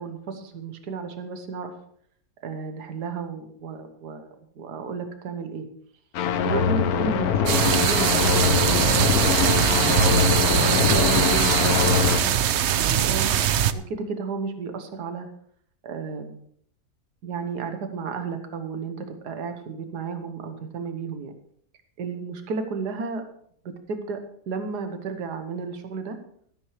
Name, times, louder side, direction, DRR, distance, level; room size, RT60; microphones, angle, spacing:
voice 1, 0.0-1.7 2.4-5.7 6.4-9.0 9.4-12.4 12.8-13.4 13.7-15.3 15.8-16.4 17.2-21.3 22.0-23.2 23.7-24.2 24.5-26.2, right 5 dB, 80° right, 6 dB, 1.7 m, -33 dB
sound 1, 6.1-12.2, left 7 dB, 70° left, 1.2 m, -23 dB
sound 2, 7.5-13.7, right 10 dB, 65° right, 0.7 m, -21 dB
13.5 x 13.0 x 3.3 m, 0.64 s
omnidirectional pair, 1.7 m